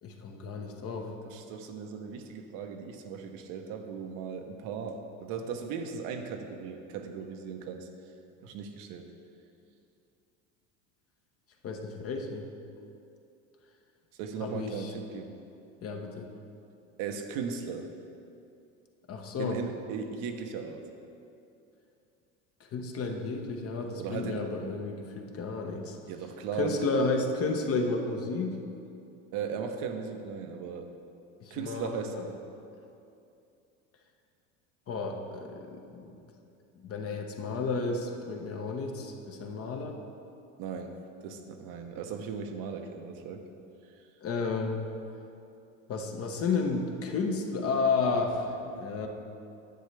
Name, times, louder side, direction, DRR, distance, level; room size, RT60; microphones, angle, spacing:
voice 1, 0.0-1.1 11.6-12.5 14.4-14.9 15.8-16.3 19.1-19.6 22.6-26.0 26.5-28.6 31.4-32.3 34.9-36.2 36.8-40.0 44.2-44.8 45.9-49.1, left 4 dB, 40° left, 3 dB, 1.1 m, -32 dB
voice 2, 1.2-7.9 8.4-9.1 14.2-15.4 17.0-17.9 19.4-20.8 24.0-24.5 26.1-26.8 29.3-30.9 31.5-32.2 40.6-43.5, right 6 dB, 65° right, 5 dB, 1.0 m, -37 dB
10.0 x 8.0 x 3.4 m, 2.7 s
supercardioid pair, 100°, 36 cm